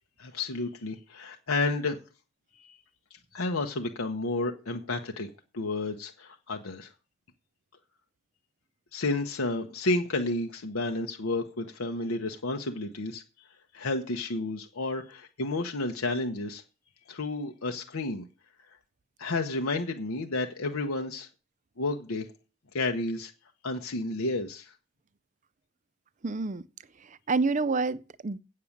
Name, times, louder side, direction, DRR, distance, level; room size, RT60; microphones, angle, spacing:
voice 1, 0.2-2.0 2.5-2.8 3.3-5.3 5.5-6.9 8.9-13.2 13.7-16.6 17.1-18.3 19.2-21.3 21.8-22.3 22.7-23.3 23.6-24.7, left 2 dB, 80° left, 0.9 m, -31 dB
voice 2, 26.2-26.6 27.0-28.4, right 3 dB, 35° right, 0.5 m, -28 dB
8.5 x 6.6 x 7.2 m
head